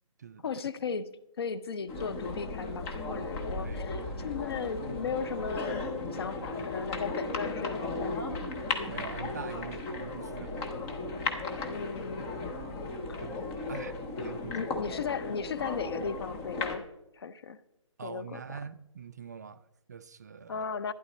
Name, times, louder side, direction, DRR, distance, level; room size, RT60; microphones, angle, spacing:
voice 1, 0.4-5.8 6.1-8.4 11.7-12.3 13.1-13.2 14.2-16.9 17.1-17.6 18.0-18.6 20.5-20.9, left 5 dB, 50° left, 0.7 m, -36 dB
sound 1, 1.9-16.8, left 3 dB, 15° left, 0.7 m, -36 dB
voice 2, 3.6-4.4 8.9-11.0 13.2-14.7 18.0-20.7, right 7 dB, 35° right, 0.3 m, -44 dB
12.0 x 10.5 x 4.2 m
hypercardioid pair, 160°, 17 cm